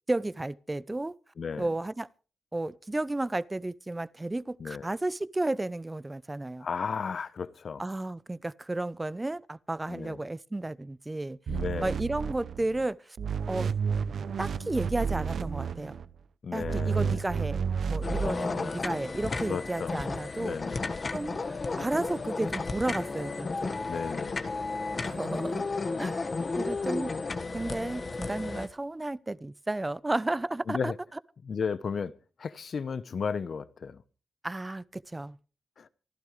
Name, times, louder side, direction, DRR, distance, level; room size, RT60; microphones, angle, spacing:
voice 1, 0.1-1.1 1.6-2.1 2.5-6.7 7.8-11.4 11.8-13.2 13.5-13.7 14.4-15.9 16.5-20.6 21.1-23.7 25.0-25.7 26.0-26.3 26.6-27.1 27.5-30.9 34.4-35.4, right 2 dB, 20° right, 0.7 m, -33 dB
voice 2, 1.4-1.7 4.6-4.9 6.6-7.8 9.9-10.2 11.5-11.9 16.4-17.2 18.2-18.8 19.5-19.9 20.4-20.9 23.9-24.5 30.7-30.9 31.4-32.1 32.4-34.0 35.8-35.9, left 6 dB, 65° left, 1.0 m, -34 dB
sound 1, 11.5-12.9 13.2-16.0 16.6-18.3, right 6 dB, 70° right, 0.7 m, -31 dB
sound 2, 18.0-28.7, left 3 dB, 45° left, 1.7 m, -33 dB
27.0 x 12.0 x 3.3 m
cardioid pair, 60°, 0 cm